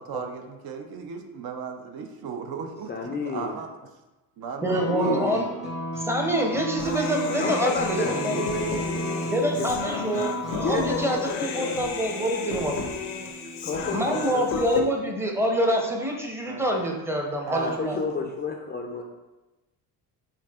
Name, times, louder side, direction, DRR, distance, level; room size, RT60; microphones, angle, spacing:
voice 1, 0.0-2.9 3.2-3.7 4.4-5.4 11.6-11.9 12.2-12.3 16.4-16.9 17.5-18.3, right 5 dB, 55° right, 5 dB, 0.6 m, -36 dB
voice 2, 2.9-3.5 4.7-5.4 7.4-9.8 10.6-11.8 13.6-14.6 17.6-19.0, left 4 dB, 25° left, 2 dB, 0.4 m, -32 dB
voice 3, 4.6-5.5 6.0-8.4 9.3-12.8 13.9-18.0, equal, 5° right, 1 dB, 0.7 m, -26 dB
sound 1, 4.6-11.2, equal, 80° right, 1.4 m, -33 dB
Human voice, 6.8-14.8, left 4 dB, 90° left, 0.6 m, -32 dB
4.5 x 2.6 x 2.4 m, 1.1 s
supercardioid pair, 65°, 43 cm